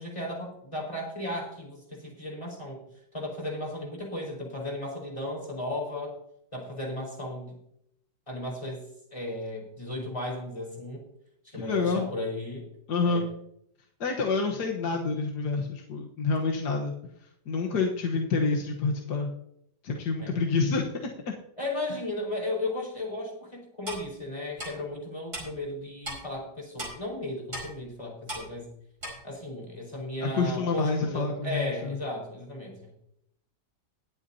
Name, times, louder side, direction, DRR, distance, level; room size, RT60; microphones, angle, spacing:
voice 1, 0.0-2.8 3.1-6.2 6.5-7.6 8.3-8.8 9.1-11.0 11.4-12.7 13.0-13.3 20.2-20.3 21.6-28.7 29.2-32.9, left 1 dB, 15° left, -1 dB, 4.8 m, -35 dB
voice 2, 11.5-12.1 12.9-13.3 14.0-16.9 17.2-19.3 19.8-21.3 30.2-32.0, left 4 dB, 70° left, 1 dB, 1.8 m, -28 dB
Clock, 23.9-24.0 24.6-24.7 25.3-25.4 26.0-26.2 26.8-26.9 27.5-27.7 28.3-28.4 29.0-29.1, right 1 dB, 40° right, 5.2 m, -35 dB
21.0 x 8.2 x 2.8 m, 0.73 s
omnidirectional pair, 1.9 m